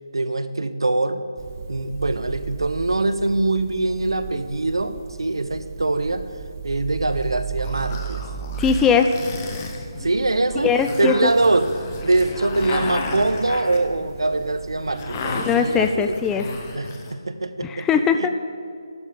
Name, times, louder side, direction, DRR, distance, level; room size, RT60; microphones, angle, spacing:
voice 1, 0.1-1.2 1.7-6.3 6.6-8.2 10.0-10.7 11.0-11.7 12.0-16.1 16.7-17.9 18.2-18.3, right 2 dB, 70° right, 11 dB, 0.7 m, -23 dB
sound 1, 1.4-16.8, right 7 dB, 35° right, 0.6 m, -36 dB
sound 2, 7.1-17.1, left 3 dB, 25° left, 1.0 m, -33 dB
voice 2, 8.6-9.1 10.6-11.3 15.3-16.5 17.6-18.3, left 6 dB, 10° left, 7 dB, 0.3 m, -20 dB
12.0 x 12.0 x 4.0 m, 2.3 s
figure-of-eight pair, 150°, 3 cm